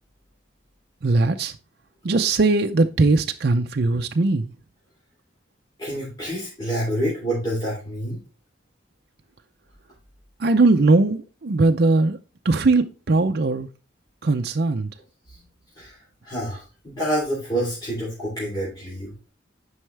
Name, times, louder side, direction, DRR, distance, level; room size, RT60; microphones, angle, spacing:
voice 1, 1.0-1.5 2.0-4.5 10.4-12.2 12.4-13.7 14.2-14.9, right 3 dB, 55° right, 0.5 m, -20 dB
voice 2, 5.8-8.2 15.8-16.0 16.2-19.1, right 1 dB, 20° left, 3.0 m, -27 dB
9.6 x 5.5 x 3.3 m
head